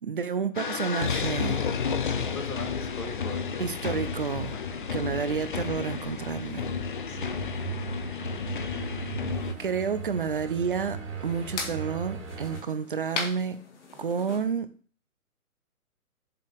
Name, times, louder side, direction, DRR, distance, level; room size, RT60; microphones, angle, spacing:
voice 1, 0.0-1.7 3.6-4.6 4.9-6.7 9.6-13.6 14.0-14.7, right 6 dB, 40° right, 0.5 m, -30 dB
sound 1, 0.5-9.5, left 6 dB, 35° left, 0.6 m, -31 dB
voice 2, 2.0-3.8 4.5-5.0 7.1-7.4, left 3 dB, 85° left, 2.2 m, -41 dB
sound 2, 7.1-12.6, right 6 dB, 60° right, 3.4 m, -38 dB
sound 3, 9.3-14.4, left 4 dB, 50° left, 2.0 m, -40 dB
7.5 x 4.0 x 6.5 m
hypercardioid pair, 145°, 44 cm